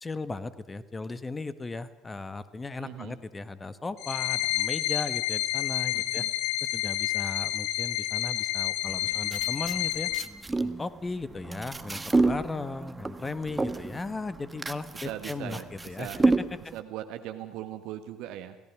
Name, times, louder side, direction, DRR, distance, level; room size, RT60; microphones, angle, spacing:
voice 1, 0.0-6.2 6.7-10.1 10.6-16.1, left 3 dB, 20° left, 13 dB, 1.4 m, -36 dB
voice 2, 2.8-3.2 5.9-6.3 14.9-16.2 16.6-18.6, right 12 dB, 65° right, 8 dB, 1.5 m, -40 dB
sound 1, 4.0-10.2, left 15 dB, 65° left, 1.1 m, -29 dB
sound 2, 8.8-16.8, right 3 dB, 15° right, 1.4 m, -30 dB
28.5 x 17.5 x 6.0 m, 0.95 s
hypercardioid pair, 60°, 0 cm